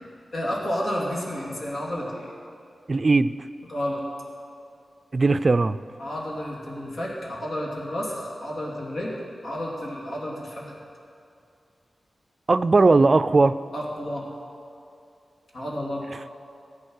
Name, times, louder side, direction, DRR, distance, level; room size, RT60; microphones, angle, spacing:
voice 1, 0.3-2.3 3.7-4.0 6.0-9.2 9.4-10.8 13.7-14.3 15.5-16.0, equal, 70° left, -4 dB, 2.9 m, -31 dB
voice 2, 2.9-3.3 5.1-5.8 12.5-13.6, right 3 dB, 45° right, 13 dB, 0.4 m, -18 dB
14.5 x 8.5 x 6.5 m, 2.5 s
cardioid pair, 60°, 0 cm